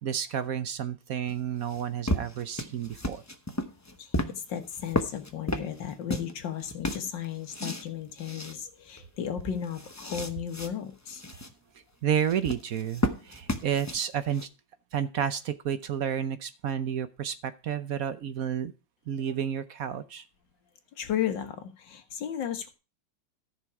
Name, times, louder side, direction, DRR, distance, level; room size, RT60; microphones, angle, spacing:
voice 1, 0.0-3.2 12.0-14.5 14.9-18.7 19.1-20.3, right 9 dB, 60° right, 12 dB, 1.1 m, -31 dB
sound 1, 1.3-6.3 6.6-7.9 8.2-8.5 9.0-9.1 9.4-10.7 11.1-11.5 12.2-14.5, left 1 dB, 15° left, 0.5 m, -33 dB
voice 2, 4.0-11.2 21.0-22.7, left 9 dB, 85° left, 8 dB, 2.0 m, -34 dB
14.0 x 6.3 x 4.7 m, 0.31 s
omnidirectional pair, 1.9 m